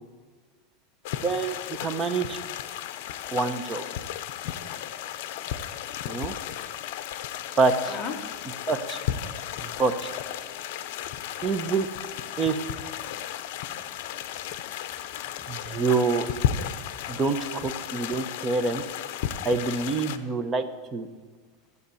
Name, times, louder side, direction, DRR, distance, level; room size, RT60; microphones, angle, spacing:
sound 1, 1.0-20.2, left 10 dB, 55° left, 0.7 m, -34 dB
voice 1, 1.2-2.4 3.3-3.8 6.0-6.3 7.6-8.0 8.7-9.0 9.6-10.1 11.4-11.9 12.4-12.6 15.5-16.3 17.1-18.8 19.4-20.7 20.9-21.1, right 4 dB, 15° right, 9 dB, 0.8 m, -26 dB
voice 2, 7.9-8.5 9.2-9.6 10.4-10.6 10.9-11.5 13.0-13.2 13.5-15.8, left 5 dB, 15° left, 0 dB, 1.4 m, -44 dB
14.5 x 8.1 x 7.0 m, 1.5 s
supercardioid pair, 165°, 0 cm